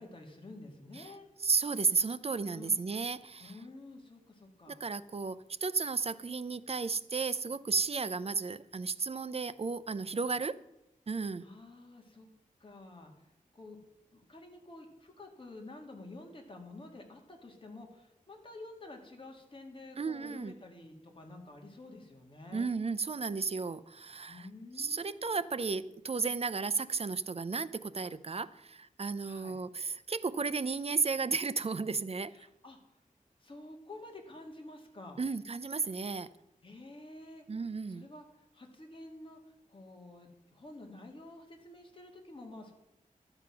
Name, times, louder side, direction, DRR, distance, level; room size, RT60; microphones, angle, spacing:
voice 1, 0.0-1.3 2.5-2.8 3.4-4.8 10.2-10.3 11.4-12.3 12.6-13.1 13.5-13.8 14.1-22.7 24.3-25.4 29.2-29.6 32.3-32.8 33.4-35.2 36.6-37.4 37.9-42.7, left 2 dB, 35° left, 1 dB, 2.3 m, -50 dB
voice 2, 1.4-3.5 4.7-10.6 11.1-11.5 20.0-20.5 22.5-24.5 24.8-32.3 35.2-36.3 37.5-38.1, right 4 dB, 45° right, 14 dB, 0.5 m, -33 dB
12.5 x 7.9 x 5.9 m, 0.90 s
wide cardioid pair, 95°, 15 cm